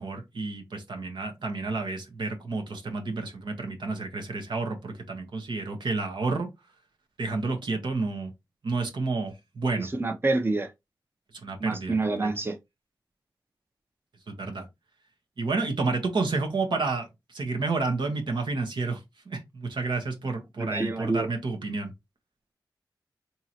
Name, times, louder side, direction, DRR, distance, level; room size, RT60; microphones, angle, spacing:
voice 1, 0.0-6.5 7.2-8.3 8.6-9.9 11.4-12.3 14.4-14.7 15.4-19.0 19.3-21.9, right 3 dB, 75° right, 1.0 m, -30 dB
voice 2, 9.7-10.7 11.6-12.5 20.6-21.3, right 3 dB, 30° right, 0.7 m, -27 dB
3.7 x 2.9 x 2.9 m
cardioid pair, 45°, 8 cm